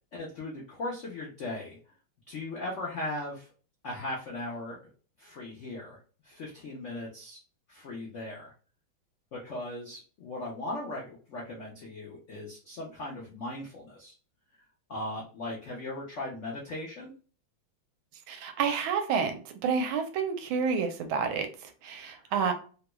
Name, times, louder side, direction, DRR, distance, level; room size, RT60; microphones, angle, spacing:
voice 1, 0.1-1.8 2.3-3.5 3.8-4.9 5.2-7.4 7.7-8.5 9.3-14.1 14.5-14.6 14.9-17.1 22.2-22.3, left 2 dB, 85° left, -3 dB, 0.6 m, -38 dB
voice 2, 18.3-22.5, right 6 dB, 80° right, 7 dB, 1.4 m, -29 dB
3.3 x 2.2 x 2.9 m, 0.39 s
omnidirectional pair, 2.2 m